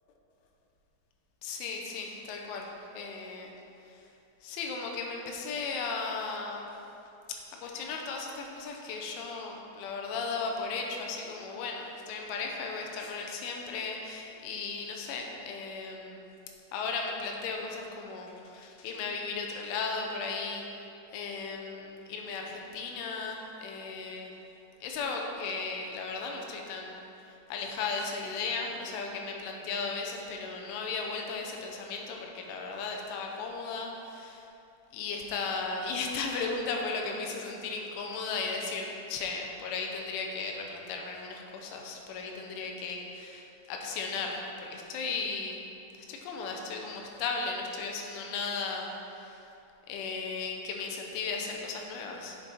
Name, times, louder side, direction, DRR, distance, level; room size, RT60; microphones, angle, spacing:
voice 1, 1.4-3.5 3.8-4.0 4.4-6.7 7.3-16.3 16.7-20.9 21.1-24.3 24.8-27.0 27.3-34.5 34.9-45.6 46.1-49.5 49.9-52.4, left 4 dB, 85° left, 1 dB, 3.2 m, -36 dB
7.9 x 6.1 x 4.2 m, 2.8 s
omnidirectional pair, 5.5 m